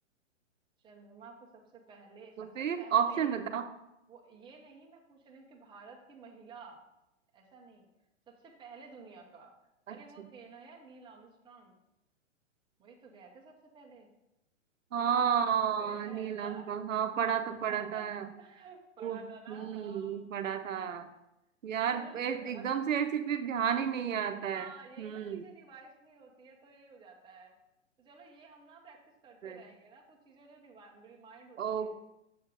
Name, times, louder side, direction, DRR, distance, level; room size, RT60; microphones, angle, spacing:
voice 1, 0.8-3.3 4.1-6.8 7.3-7.8 8.3-9.5 9.9-11.7 12.8-14.1 15.2-16.7 17.5-18.1 18.4-20.3 21.9-22.7 23.1-23.2 24.4-27.5 28.0-31.9, right 4 dB, 10° right, -1 dB, 1.0 m, -53 dB
voice 2, 2.4-3.7 9.9-10.3 14.9-18.3 19.0-19.2 19.5-21.1 21.6-24.7 25.0-25.4 29.4-29.6 31.6-32.0, right 8 dB, 80° right, 8 dB, 0.8 m, -32 dB
7.1 x 4.4 x 5.1 m, 0.89 s
hypercardioid pair, 130°, 38 cm